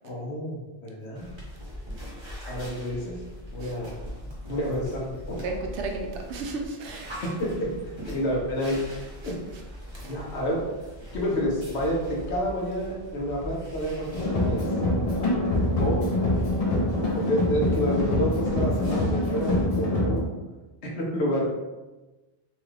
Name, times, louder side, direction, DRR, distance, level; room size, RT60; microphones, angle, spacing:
voice 1, 0.0-1.3 2.4-3.2 3.5-5.4 7.2-7.7 8.0-8.8 9.2-9.3 10.0-10.6 11.1-14.6 15.8-16.1 17.1-20.3 21.0-21.4, equal, 70° left, -2 dB, 1.1 m, -29 dB
sound 1, 1.1-19.6, equal, 30° right, 0.7 m, -41 dB
voice 2, 5.4-7.1 9.2-9.3 10.0-10.1, right 3 dB, 80° right, 2 dB, 0.9 m, -34 dB
sound 2, 14.1-20.2, left 1 dB, 45° left, 0.5 m, -25 dB
3.0 x 2.3 x 3.2 m, 1.1 s
omnidirectional pair, 1.2 m